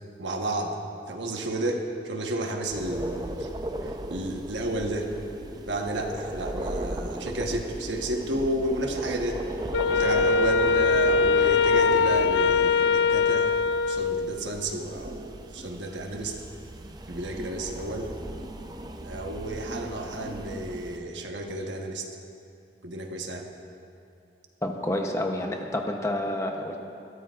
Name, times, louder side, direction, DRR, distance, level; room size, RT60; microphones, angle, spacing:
voice 1, 0.2-0.7 1.1-3.5 3.8-5.1 5.7-9.4 9.9-13.5 13.9-16.4 17.1-18.1 19.0-22.1 22.8-23.5, right 1 dB, 90° right, 2 dB, 1.3 m, -32 dB
sound 1, 2.7-21.0, right 1 dB, 20° right, 0.6 m, -37 dB
Wind instrument woodwind instrument, 9.7-14.4, left 4 dB, 80° left, 0.3 m, -22 dB
voice 2, 24.6-26.8, left 1 dB, 15° left, 2 dB, 0.8 m, -29 dB
21.5 x 13.0 x 2.5 m, 2.6 s
head